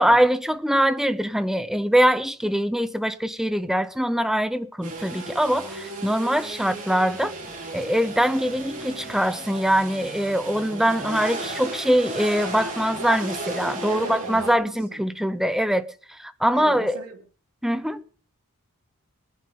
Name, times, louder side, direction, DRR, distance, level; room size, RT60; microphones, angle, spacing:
voice 1, 0.0-7.3 7.7-17.0 17.6-18.0, equal, ahead, 0.7 m, -23 dB
sound 1, 4.8-14.5, right 2 dB, 35° right, 4.4 m, -35 dB
voice 2, 10.9-11.2 12.9-13.2 13.8-14.5 14.9-15.0 16.5-17.2, right 3 dB, 80° right, 3.7 m, -35 dB
21.0 x 11.0 x 3.8 m
head